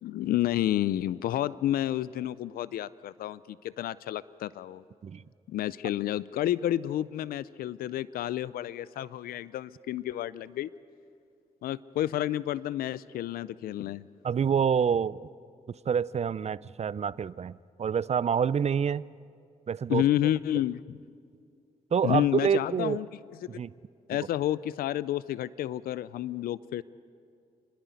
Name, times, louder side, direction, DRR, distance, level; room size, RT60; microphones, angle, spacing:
voice 1, 0.0-4.8 5.5-10.7 11.6-14.0 19.9-21.0 22.0-23.1 23.5-23.6 24.1-26.8, left 13 dB, 85° left, 19 dB, 0.4 m, -30 dB
voice 2, 14.2-15.2 15.9-19.0 19.7-20.0 21.9-23.0 23.5-23.7, right 7 dB, 45° right, 19 dB, 0.5 m, -27 dB
28.5 x 10.5 x 9.3 m, 2.4 s
cardioid pair, 55°, 15 cm